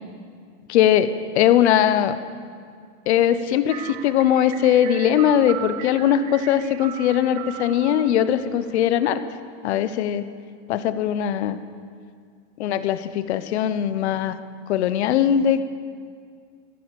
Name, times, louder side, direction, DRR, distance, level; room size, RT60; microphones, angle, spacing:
voice 1, 0.7-2.1 3.1-9.2 9.6-10.3 10.7-11.6 12.6-14.4 14.7-15.6, left 10 dB, 60° left, 12 dB, 0.9 m, -20 dB
sound 1, 3.7-9.1, right 11 dB, 35° right, 0.4 m, -38 dB
15.5 x 11.0 x 7.7 m, 2.1 s
supercardioid pair, 175°, 37 cm